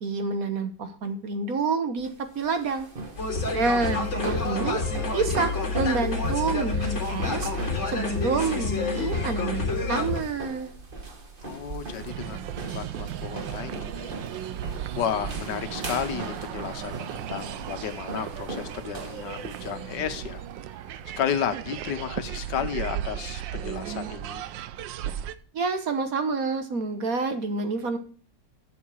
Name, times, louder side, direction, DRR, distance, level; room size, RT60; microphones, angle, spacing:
voice 1, 0.0-2.9 3.5-4.8 5.1-7.5 7.9-10.7 25.5-28.0, right 4 dB, 55° right, 8 dB, 1.5 m, -28 dB
sound 1, 2.0-21.2, right 2 dB, 30° right, 1.4 m, -39 dB
sound 2, 3.2-10.2, left 3 dB, 40° left, 2.4 m, -28 dB
voice 2, 11.4-12.5 12.7-14.2 14.9-20.4 21.2-24.4, left 8 dB, 75° left, 10 dB, 1.5 m, -32 dB
sound 3, 12.0-25.4, right 11 dB, 90° right, 1.4 m, -36 dB
11.0 x 7.2 x 4.7 m, 0.40 s
omnidirectional pair, 1.9 m